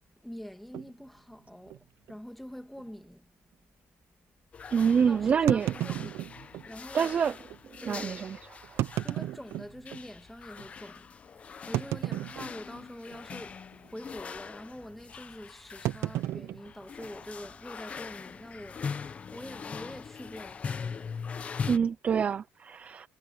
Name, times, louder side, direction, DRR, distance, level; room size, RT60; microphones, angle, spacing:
voice 1, 0.2-3.3 3.6-3.7 5.1-6.3 6.7-7.2 7.8-8.2 9.0-21.1, equal, ahead, 1.9 m, -45 dB
sound 1, 0.7-0.9 1.7-1.8 2.1-2.2 2.8-2.9 5.5-6.7 7.5-7.6 8.6-10.1 10.6-10.7 11.7-12.8 13.1-13.5 13.7-14.0 15.8-17.5, right 14 dB, 65° right, 0.8 m, -33 dB
sound 2, 4.5-21.8, left 6 dB, 25° left, 1.0 m, -42 dB
voice 2, 4.7-5.7 6.9-7.3 7.9-8.3 8.7-9.0 21.7-23.1, right 7 dB, 30° right, 0.5 m, -26 dB
cardioid pair, 160°, 5 cm